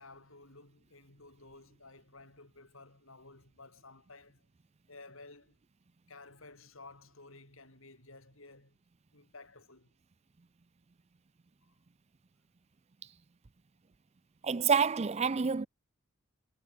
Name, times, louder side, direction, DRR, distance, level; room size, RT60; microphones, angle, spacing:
voice 1, 0.0-4.4 4.9-5.6 6.1-8.8 9.1-9.9, left 3 dB, 75° left, 6.5 m, -54 dB
voice 2, 14.4-15.7, right 6 dB, 30° right, 0.4 m, -28 dB
head